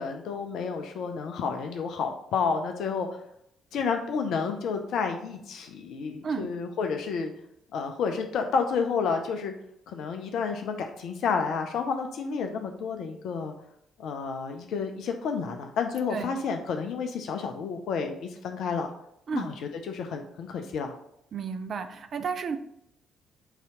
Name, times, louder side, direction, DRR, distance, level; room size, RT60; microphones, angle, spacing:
voice 1, 0.0-3.2 3.7-7.3 7.7-9.5 9.9-13.5 14.0-18.9 19.3-19.5 19.9-20.9, left 5 dB, 55° left, 5 dB, 0.4 m, -30 dB
voice 2, 21.3-22.6, right 5 dB, 45° right, 8 dB, 0.4 m, -32 dB
4.0 x 2.8 x 4.6 m, 0.75 s
figure-of-eight pair, 45°, 0 cm